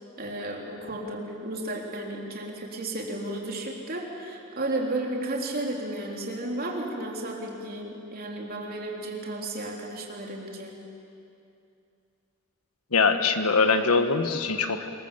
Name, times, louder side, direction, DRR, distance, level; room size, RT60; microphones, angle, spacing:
voice 1, 0.2-10.8, right 1 dB, 45° right, 0 dB, 3.5 m, -33 dB
voice 2, 12.9-14.9, left 4 dB, 85° left, 8 dB, 1.5 m, -23 dB
25.5 x 22.0 x 7.5 m, 2.6 s
head